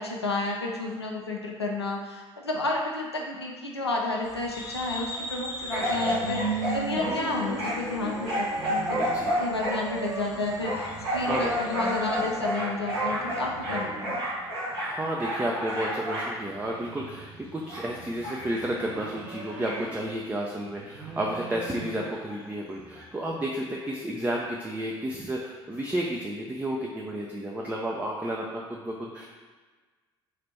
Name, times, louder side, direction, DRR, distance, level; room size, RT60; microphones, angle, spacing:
voice 1, 0.0-9.0 9.4-14.2, left 2 dB, 90° left, -1 dB, 0.5 m, -31 dB
sound 1, 4.2-12.4, left 1 dB, 30° left, 0.8 m, -42 dB
sound 2, 5.7-20.1 20.6-22.4 23.0-23.1, right 1 dB, 75° right, 1.0 m, -31 dB
voice 2, 9.0-9.4 11.2-11.7 14.8-29.3, right 1 dB, 10° right, -2 dB, 0.5 m, -32 dB
3.1 x 2.5 x 4.3 m, 1.4 s
figure-of-eight pair, 55°, 13 cm